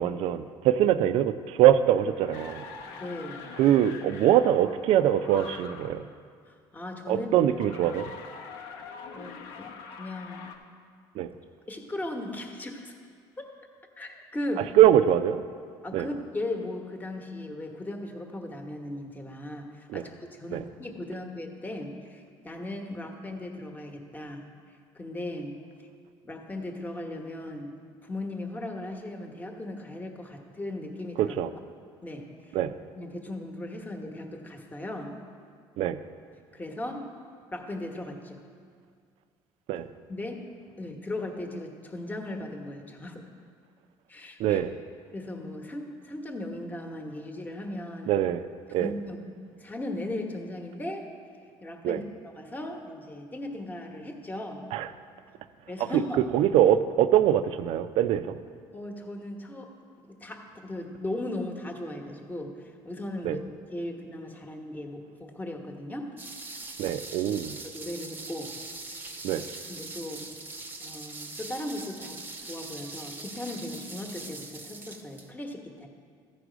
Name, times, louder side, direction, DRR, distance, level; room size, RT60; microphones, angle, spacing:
voice 1, 0.0-2.6 3.6-6.1 7.1-8.1 11.2-11.3 14.8-15.4 15.9-16.1 19.9-20.0 20.5-20.6 31.2-31.5 32.5-32.7 35.8-36.0 39.7-39.9 44.4-44.7 48.1-48.4 48.7-48.9 51.8-52.0 54.7-54.9 55.9-58.4 63.2-63.4 66.8-67.6 69.2-69.5, right 11 dB, 65° right, 12 dB, 0.4 m, -23 dB
sound 1, 1.9-6.1 7.4-10.6, left 5 dB, 85° left, 0.8 m, -44 dB
voice 2, 2.9-3.5 6.5-7.3 9.1-10.5 11.7-12.9 13.4-13.5 14.0-14.7 15.8-25.9 26.2-27.7 28.0-31.4 32.0-32.6 33.0-35.2 36.5-37.1 37.5-38.4 40.1-40.4 40.8-43.2 44.1-44.6 45.1-48.1 48.8-51.0 51.6-54.6 55.7-56.2 58.7-59.7 60.0-63.4 63.7-66.1 67.6-68.5 69.7-70.3 70.8-72.2 72.4-75.9, left 1 dB, 15° left, 3 dB, 1.0 m, -37 dB
sound 2, 66.2-75.3, right 3 dB, 20° right, 0.7 m, -42 dB
14.0 x 4.8 x 5.0 m, 2.2 s
cardioid pair, 100°, 10 cm